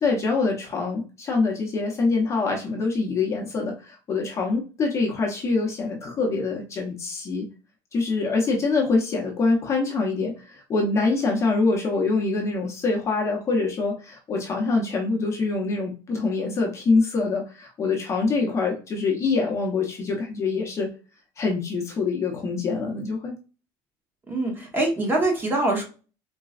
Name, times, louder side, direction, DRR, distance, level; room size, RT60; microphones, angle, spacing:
voice 1, 0.0-7.5 7.9-20.9 21.4-23.3, left 3 dB, 25° left, 0 dB, 0.7 m, -25 dB
voice 2, 24.3-25.8, right 2 dB, 20° right, 0 dB, 1.0 m, -24 dB
4.0 x 2.2 x 2.3 m, 0.34 s
cardioid pair, 160°, 11 cm